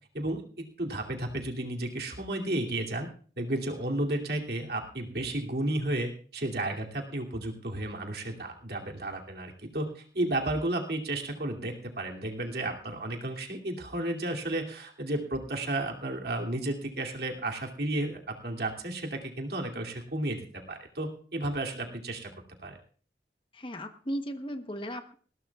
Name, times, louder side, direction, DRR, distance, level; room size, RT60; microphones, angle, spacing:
voice 1, 0.8-3.1 3.4-22.3 22.6-22.8, right 1 dB, 60° right, 1 dB, 2.7 m, -33 dB
voice 2, 23.5-25.1, equal, 30° left, 7 dB, 1.0 m, -36 dB
20.5 x 17.0 x 2.4 m, 0.43 s
head